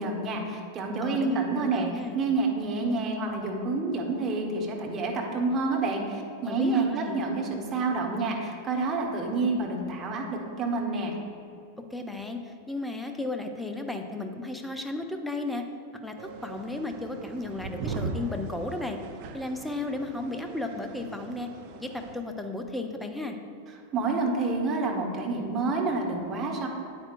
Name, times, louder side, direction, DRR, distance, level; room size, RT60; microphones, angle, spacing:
voice 1, 0.0-1.9 2.1-11.1 23.9-26.7, right 3 dB, 30° right, 0 dB, 1.2 m, -28 dB
voice 2, 1.0-2.2 6.5-7.2 11.9-15.6 16.0-19.0 19.3-21.5 21.7-23.4, left 2 dB, 5° left, 5 dB, 0.6 m, -34 dB
sound 1, 16.2-22.2, right 4 dB, 45° right, 0.7 m, -39 dB
8.8 x 8.7 x 2.5 m, 2.4 s
figure-of-eight pair, 90°, 0 cm